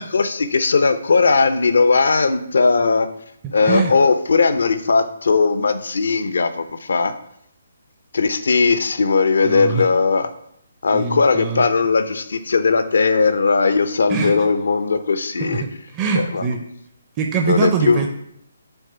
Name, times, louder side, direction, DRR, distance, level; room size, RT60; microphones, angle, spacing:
voice 1, 0.1-3.1 3.5-7.1 8.1-10.3 10.8-15.6 16.1-16.4 17.5-18.0, left 4 dB, 70° left, 11 dB, 0.7 m, -18 dB
voice 2, 3.6-3.9 9.4-9.9 10.9-11.6 14.1-14.4 15.4-16.7 17.2-18.1, right 5 dB, 25° right, 3 dB, 0.6 m, -23 dB
8.1 x 3.5 x 5.7 m, 0.75 s
figure-of-eight pair, 140°, 0 cm